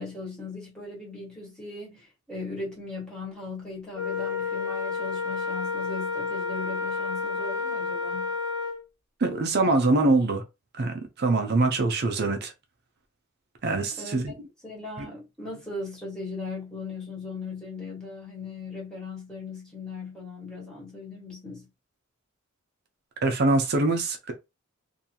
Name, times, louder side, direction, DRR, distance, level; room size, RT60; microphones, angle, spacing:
voice 1, 0.0-8.3 13.9-14.3 14.6-21.7, left 3 dB, 5° left, 1.4 m, -38 dB
Wind instrument woodwind instrument, 3.9-8.8, left 4 dB, 80° left, 0.8 m, -30 dB
voice 2, 9.2-10.4 10.8-12.5 13.6-14.3 15.0-15.1 23.2-24.3, right 2 dB, 50° right, 0.6 m, -24 dB
2.7 x 2.3 x 2.8 m
head